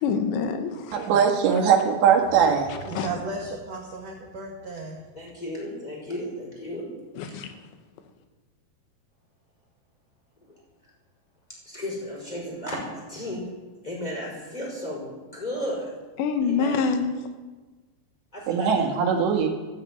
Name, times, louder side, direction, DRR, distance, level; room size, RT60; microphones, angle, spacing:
voice 1, 0.0-1.1 1.5-1.6 2.7-3.1 7.2-7.5 16.2-17.2, left 5 dB, 80° left, 7 dB, 3.4 m, -26 dB
voice 2, 0.9-2.7 18.5-19.5, right 7 dB, 80° right, 2 dB, 4.1 m, -20 dB
voice 3, 2.9-5.1, right 3 dB, 60° right, 1 dB, 1.8 m, -35 dB
voice 4, 5.1-6.9 7.3-7.4 11.6-13.5 13.8-15.9 16.4-16.9 18.3-18.7, left 1 dB, 10° left, -3 dB, 4.7 m, -34 dB
14.5 x 9.6 x 9.1 m, 1.3 s
omnidirectional pair, 5.1 m